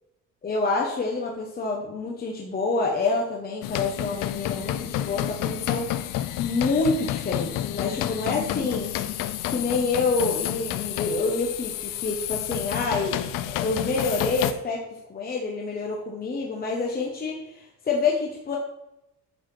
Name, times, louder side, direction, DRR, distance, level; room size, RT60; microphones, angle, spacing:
voice 1, 0.4-5.9 6.4-8.9 9.5-14.8 15.1-18.6, left 3 dB, 25° left, -1 dB, 1.1 m, -27 dB
sound 1, 3.6-14.5, left 13 dB, 70° left, 0.6 m, -30 dB
8.8 x 4.1 x 4.9 m, 0.88 s
cardioid pair, 135°, 34 cm